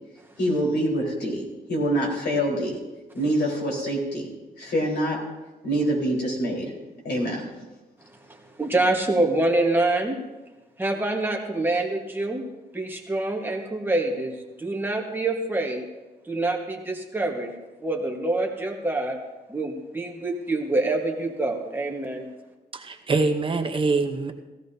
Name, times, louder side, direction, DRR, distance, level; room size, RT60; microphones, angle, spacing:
voice 1, 0.4-2.8 3.1-5.2 5.6-6.7 7.0-7.4, right 1 dB, 80° left, -2 dB, 4.1 m, -25 dB
voice 2, 8.6-10.2 10.8-12.4 12.7-15.9 16.3-17.5 17.8-19.2 19.5-22.3, right 2 dB, 10° right, 1 dB, 1.3 m, -26 dB
voice 3, 22.7-24.3, right 3 dB, 30° right, 5 dB, 0.8 m, -24 dB
17.5 x 15.0 x 2.7 m, 1.1 s
wide cardioid pair, 160°, 17 cm